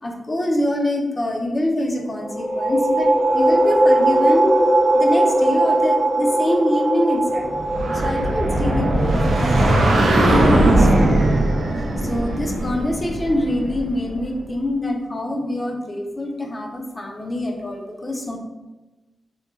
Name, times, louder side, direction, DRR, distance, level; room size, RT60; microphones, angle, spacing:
voice 1, 0.0-7.5 7.9-11.6 12.0-18.4, left 1 dB, 25° left, 1 dB, 0.4 m, -25 dB
sound 1, 2.2-11.6, right 1 dB, 90° left, 1.0 m, -20 dB
sound 2, 7.6-14.2, right 1 dB, 85° right, 0.4 m, -19 dB
2.9 x 2.2 x 2.3 m, 1.1 s
wide cardioid pair, 115°, 0 cm